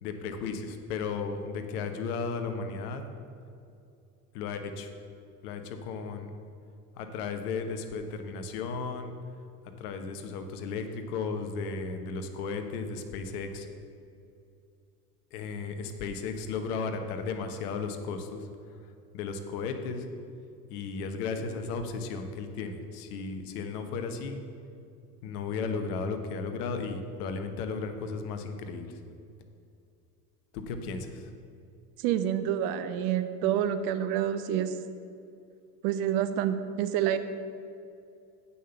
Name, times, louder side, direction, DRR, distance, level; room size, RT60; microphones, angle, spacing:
voice 1, 0.0-3.0 4.3-4.9 5.4-6.3 7.0-9.1 9.8-13.7 15.3-18.5 19.1-20.1 20.7-24.4 25.2-29.0 30.5-31.3, left 4 dB, 70° left, 7 dB, 1.1 m, -35 dB
voice 2, 32.0-34.7 35.8-37.2, right 10 dB, 70° right, 11 dB, 0.8 m, -28 dB
8.6 x 5.6 x 6.9 m, 2.5 s
hypercardioid pair, 75°, 47 cm